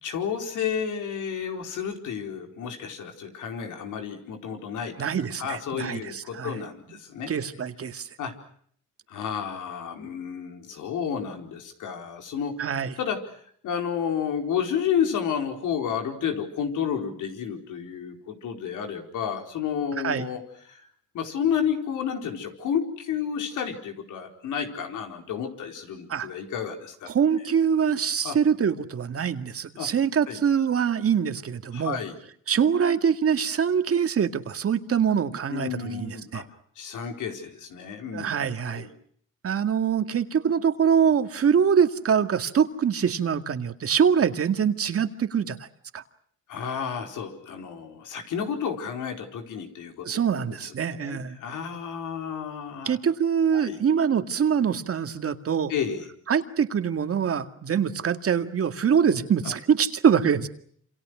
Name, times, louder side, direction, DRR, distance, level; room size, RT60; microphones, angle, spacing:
voice 1, 0.0-5.0 5.4-7.3 8.2-8.3 9.1-12.6 13.0-13.4 13.6-20.4 20.7-20.9 21.1-27.1 28.2-28.4 29.8-29.9 30.3-30.4 31.7-32.1 35.5-36.5 36.8-38.3 38.7-38.9 46.5-50.1 50.6-53.0 53.5-53.8 55.7-56.1 59.4-59.5, left 7 dB, 80° left, 4 dB, 4.6 m, -31 dB
voice 2, 5.0-6.6 7.3-8.1 12.6-12.9 20.0-20.3 26.1-26.3 27.1-32.0 32.5-36.4 38.1-38.9 39.4-45.6 45.9-46.0 50.0-51.4 52.9-55.7 56.3-60.5, right 7 dB, 50° right, 8 dB, 2.1 m, -24 dB
28.0 x 27.0 x 6.4 m, 0.63 s
cardioid pair, 90°, 30 cm